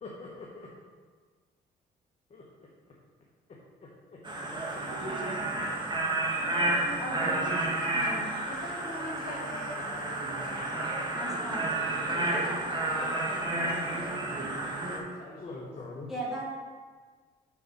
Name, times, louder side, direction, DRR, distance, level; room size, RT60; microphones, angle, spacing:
voice 1, 0.0-0.7 2.3-2.4 3.5-4.2 4.7-5.1 15.4-16.1, left 3 dB, 35° left, -3 dB, 0.9 m, -44 dB
sound 1, 4.3-15.0, right 2 dB, 25° right, 1.1 m, -31 dB
voice 2, 7.0-7.6 7.9-8.3 11.1-11.8 16.1-16.4, right 1 dB, ahead, -6 dB, 1.8 m, -38 dB
voice 3, 8.5-10.2 11.9-15.8, left 1 dB, 55° left, -3 dB, 1.9 m, -44 dB
5.1 x 4.5 x 5.3 m, 1.5 s
cardioid pair, 100°, 18 cm